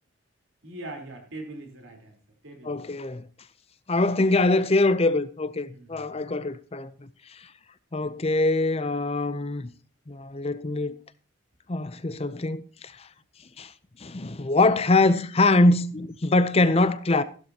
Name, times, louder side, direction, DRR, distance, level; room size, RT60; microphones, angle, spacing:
voice 1, 0.6-2.2 2.4-2.8 5.7-6.1, right 2 dB, 70° right, 3.9 m, -41 dB
voice 2, 2.6-3.2 3.9-6.9 7.3-7.4 7.9-9.7 10.1-11.0 11.7-13.1 13.6-13.7 14.0-17.2, left 2 dB, 30° left, 0.6 m, -23 dB
15.5 x 12.0 x 2.9 m
head